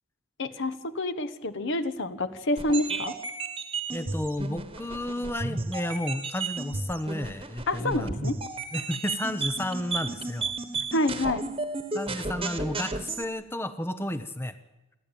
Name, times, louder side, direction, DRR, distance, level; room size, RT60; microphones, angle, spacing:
voice 1, 0.4-3.2 7.7-8.4 10.9-11.5, left 1 dB, 55° left, 12 dB, 1.2 m, -28 dB
sound 1, 2.6-13.2, right 3 dB, 25° right, 1.4 m, -34 dB
voice 2, 3.9-8.1 8.7-10.9 11.9-14.6, left 1 dB, 10° left, 11 dB, 0.7 m, -32 dB
28.5 x 11.5 x 9.0 m, 1.0 s
head